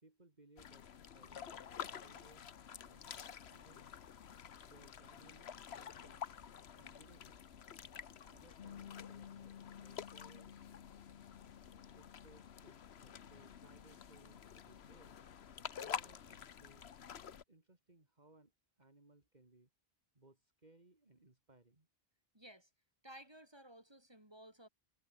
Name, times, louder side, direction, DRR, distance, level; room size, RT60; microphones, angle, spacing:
voice 1, 0.0-0.9 1.1-2.4 2.8-3.9 4.6-6.3 6.8-7.4 8.3-10.5 11.9-15.2 15.8-16.9 17.5-18.5 18.8-19.7 20.1-21.9, right 2 dB, 45° right, 3.1 m, -65 dB
sound 1, 0.6-17.4, left 8 dB, 85° left, 1.2 m, -50 dB
Bass guitar, 8.6-14.8, left 8 dB, 65° left, 0.9 m, -56 dB
voice 2, 22.3-22.7 23.0-24.7, right 1 dB, 25° right, 6.5 m, -56 dB
omnidirectional pair, 1.1 m